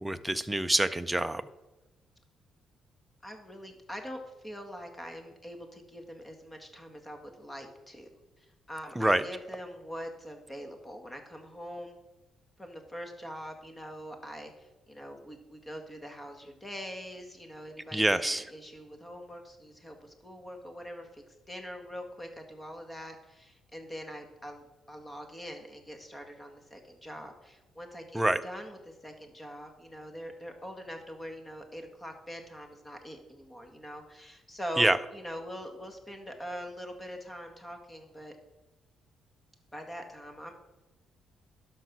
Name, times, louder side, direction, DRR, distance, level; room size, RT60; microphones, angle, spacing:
voice 1, 0.0-1.4 9.0-9.2 17.9-18.4 28.1-28.4 34.8-35.0, right 1 dB, 10° right, 11 dB, 0.6 m, -26 dB
voice 2, 3.2-8.1 8.4-12.0 12.6-38.4 39.7-40.5, equal, 15° left, 4 dB, 1.9 m, -43 dB
12.0 x 5.6 x 6.1 m, 1.1 s
cardioid pair, 90°, 0 cm